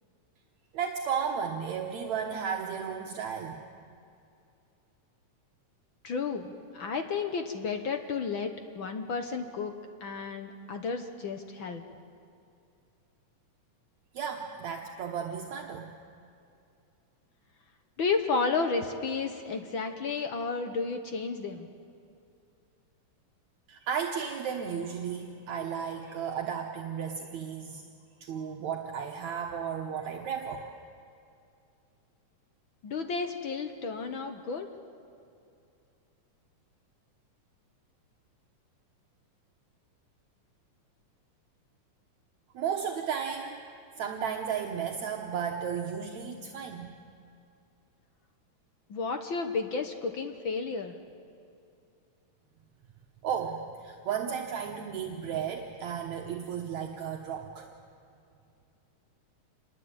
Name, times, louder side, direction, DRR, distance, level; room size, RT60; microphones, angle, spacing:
voice 1, 0.7-3.6 14.1-15.9 23.7-27.8 28.2-30.8 42.5-43.6 44.0-46.9 53.2-57.7, right 7 dB, 70° right, 2 dB, 2.4 m, -34 dB
voice 2, 6.0-11.8 18.0-21.7 32.8-34.7 48.9-50.9, left 4 dB, 60° left, 6 dB, 1.4 m, -32 dB
27.0 x 21.5 x 8.8 m, 2.5 s
omnidirectional pair, 3.6 m